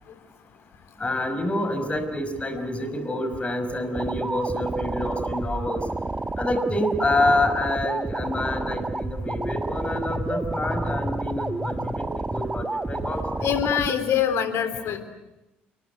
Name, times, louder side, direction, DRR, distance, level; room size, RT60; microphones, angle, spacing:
voice 1, 1.0-5.8 6.4-12.1 12.3-13.5 14.9-15.0, left 1 dB, 20° left, 8 dB, 5.8 m, -27 dB
voice 2, 2.5-2.9 13.4-15.0, left 9 dB, 55° left, 10 dB, 3.6 m, -25 dB
sound 1, 3.9-13.9, right 2 dB, 15° right, 1.6 m, -30 dB
29.0 x 24.0 x 8.3 m, 0.98 s
figure-of-eight pair, 55°, 5 cm